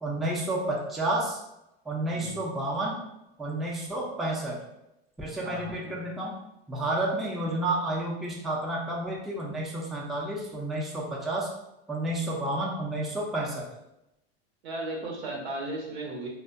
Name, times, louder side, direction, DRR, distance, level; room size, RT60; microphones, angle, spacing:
voice 1, 0.0-1.4 1.9-3.0 3.4-4.6 5.2-6.3 6.7-11.5 11.9-13.6, right 1 dB, ahead, -3 dB, 0.3 m, -30 dB
voice 2, 5.4-5.7 14.6-16.3, right 2 dB, 90° right, -1 dB, 0.8 m, -35 dB
2.5 x 2.1 x 2.4 m, 0.88 s
hypercardioid pair, 105°, 32 cm